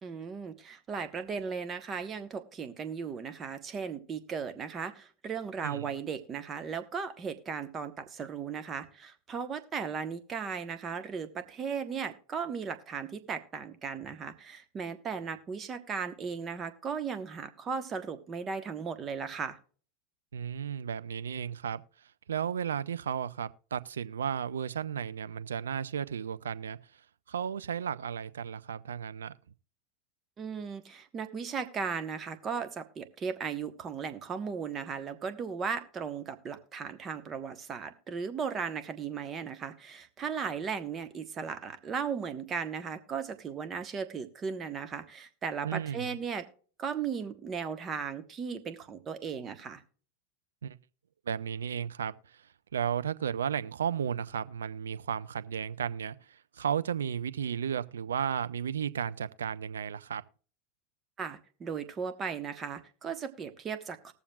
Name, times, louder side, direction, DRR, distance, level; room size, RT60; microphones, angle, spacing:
voice 1, 0.0-19.6 30.4-46.5 46.8-49.8 61.2-64.1, right 6 dB, 30° right, 1.2 m, -36 dB
voice 2, 20.3-21.8 22.3-26.8 27.3-29.3 45.6-46.1 50.6-50.7 51.3-52.1 52.7-56.2 56.6-60.2, right 8 dB, 80° right, 0.4 m, -34 dB
20.0 x 7.0 x 2.3 m
hypercardioid pair, 90°, 0 cm